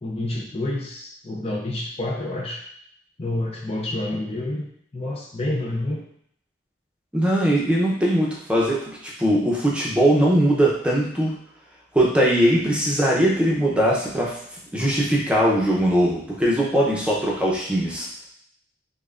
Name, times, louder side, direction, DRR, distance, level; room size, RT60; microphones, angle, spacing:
voice 1, 0.0-2.6 3.2-4.7 4.9-6.1, left 1 dB, 35° left, -2 dB, 0.5 m, -28 dB
voice 2, 7.1-11.3 11.9-14.4 14.7-18.1, right 1 dB, 5° right, -4 dB, 0.7 m, -20 dB
5.2 x 2.2 x 2.4 m, 0.68 s
head